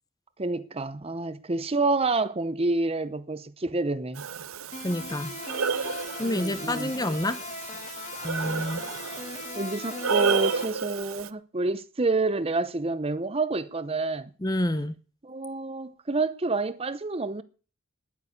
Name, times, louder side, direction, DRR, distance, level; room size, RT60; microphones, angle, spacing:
voice 1, 0.4-4.2 6.3-6.9 9.6-14.3 15.2-17.4, right 3 dB, 30° right, 0.7 m, -28 dB
Breathing, 4.2-11.3, right 6 dB, 90° right, 0.7 m, -32 dB
sound 1, 4.7-10.6, left 3 dB, 35° left, 2.4 m, -38 dB
voice 2, 4.8-5.3 6.2-7.4 8.2-8.8 14.4-14.9, left 1 dB, 20° left, 0.8 m, -28 dB
10.5 x 9.4 x 8.5 m
head